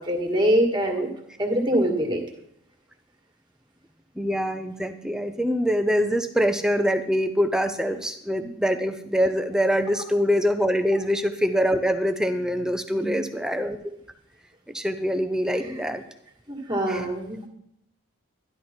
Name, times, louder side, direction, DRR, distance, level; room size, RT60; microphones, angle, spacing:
voice 1, 0.1-1.1 1.4-2.2 12.8-13.2 15.6-15.8 16.5-17.4, right 1 dB, 20° right, 2 dB, 1.8 m, -24 dB
voice 2, 4.2-13.9 14.7-16.0 16.9-17.1, equal, 5° right, 8 dB, 0.5 m, -24 dB
13.0 x 11.5 x 4.3 m, 0.74 s
head